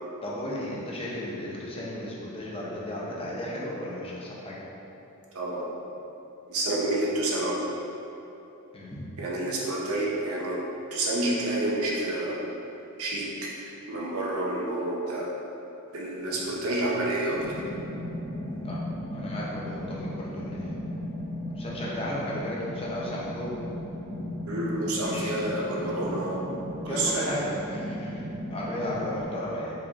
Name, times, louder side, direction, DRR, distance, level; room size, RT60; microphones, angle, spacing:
voice 1, 0.2-4.6 8.7-9.1 16.3-16.4 18.6-18.8 19.1-20.8 21.6-23.6 25.1-25.3 26.9-29.7, left 1 dB, 25° left, -5 dB, 0.6 m, -34 dB
voice 2, 5.3-5.6 6.5-7.5 9.2-10.6 10.9-12.4 13.0-13.5 13.9-15.3 15.9-17.6 24.5-26.4 26.8-27.3, right 1 dB, 70° right, -4 dB, 0.6 m, -29 dB
sound 1, 17.3-29.2, left 1 dB, 90° right, 1.3 m, -36 dB
4.7 x 2.4 x 2.8 m, 3.0 s
head